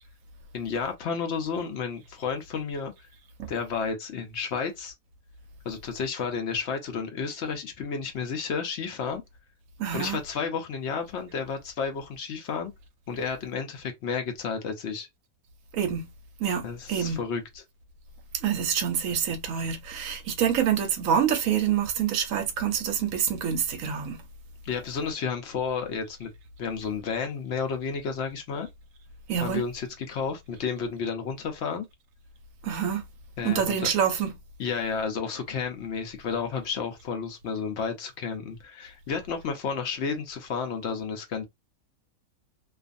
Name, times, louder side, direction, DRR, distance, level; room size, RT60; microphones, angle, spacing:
voice 1, 0.5-2.9 3.5-4.9 5.6-9.2 9.9-12.7 13.1-15.1 16.6-17.6 24.6-26.3 26.6-28.7 29.4-31.9 33.4-33.9 34.6-41.4, left 5 dB, 60° left, 0.8 m, -31 dB
voice 2, 9.8-10.2 15.7-16.1 16.4-17.2 18.3-24.2 29.3-29.6 32.6-33.0 33.4-34.3, right 8 dB, 70° right, 0.9 m, -26 dB
2.5 x 2.4 x 2.5 m
omnidirectional pair, 1.6 m